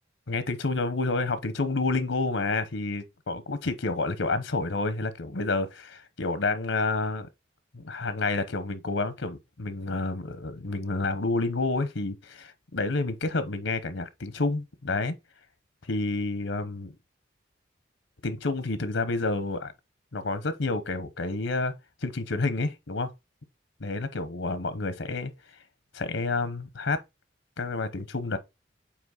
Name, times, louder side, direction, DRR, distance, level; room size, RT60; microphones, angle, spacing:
voice 1, 0.3-7.3 7.7-15.1 15.8-16.9 18.2-19.7 20.1-21.7 22.0-23.1 23.8-25.3 25.9-27.0 27.6-28.4, left 3 dB, 85° left, 1.0 m, -29 dB
8.6 x 2.9 x 4.0 m
head